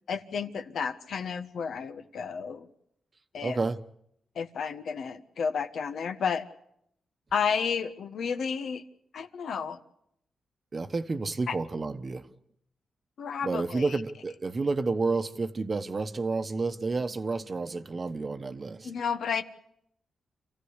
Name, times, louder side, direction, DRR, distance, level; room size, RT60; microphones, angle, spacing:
voice 1, 0.1-2.7 3.3-3.6 4.3-6.4 7.3-8.8 9.1-9.8 11.5-11.6 13.2-13.9 18.8-19.4, left 6 dB, 75° left, 1.3 m, -31 dB
voice 2, 3.4-3.8 10.7-12.3 13.4-18.9, right 3 dB, 35° right, 1.0 m, -30 dB
27.5 x 15.0 x 8.1 m
cardioid pair, 100°, 0 cm